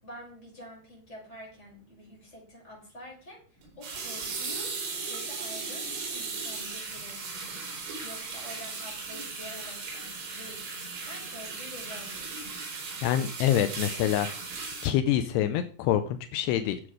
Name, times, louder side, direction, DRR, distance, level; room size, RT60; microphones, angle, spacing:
voice 1, 0.0-3.4 3.8-4.8 5.1-7.6 8.0-12.5, left 1 dB, 15° left, -4 dB, 6.0 m, -47 dB
sound 1, 3.6-14.9, right 4 dB, 75° right, 6.0 m, -37 dB
voice 2, 13.0-14.3 14.8-16.8, left 11 dB, 85° left, 9 dB, 2.4 m, -26 dB
11.5 x 7.7 x 4.9 m, 0.43 s
omnidirectional pair, 5.4 m